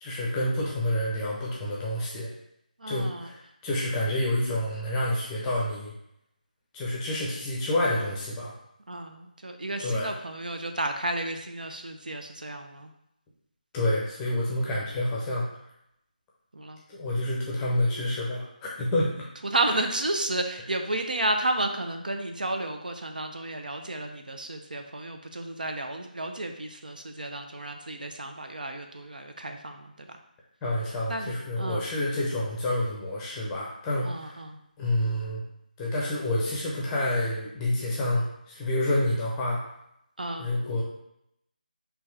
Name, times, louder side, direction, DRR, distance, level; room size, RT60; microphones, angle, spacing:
voice 1, 0.0-2.3 2.9-5.9 6.7-8.5 9.8-10.1 13.7-15.5 16.9-19.3 19.7-19.8 30.6-34.4 34.8-35.4 35.8-39.6 40.4-40.8, left 1 dB, 10° left, -4 dB, 0.6 m, -28 dB
voice 2, 2.8-3.3 8.9-12.9 16.5-16.8 19.4-30.2 31.1-31.8 34.0-34.6 40.2-40.5, right 2 dB, 65° right, 5 dB, 0.5 m, -32 dB
4.4 x 2.8 x 3.2 m, 0.77 s
figure-of-eight pair, 155°, 5 cm